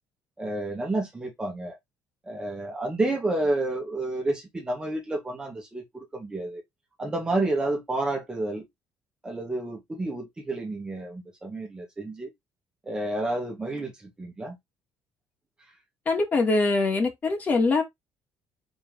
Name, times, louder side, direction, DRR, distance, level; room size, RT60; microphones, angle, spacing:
voice 1, 0.4-1.8 2.2-5.8 6.1-6.6 7.0-8.6 9.2-12.3 12.9-14.6, right 2 dB, 15° right, 2.1 m, -30 dB
voice 2, 16.1-17.8, left 3 dB, 30° left, 2.7 m, -23 dB
5.3 x 4.4 x 4.0 m
cardioid pair, 145°, 6 cm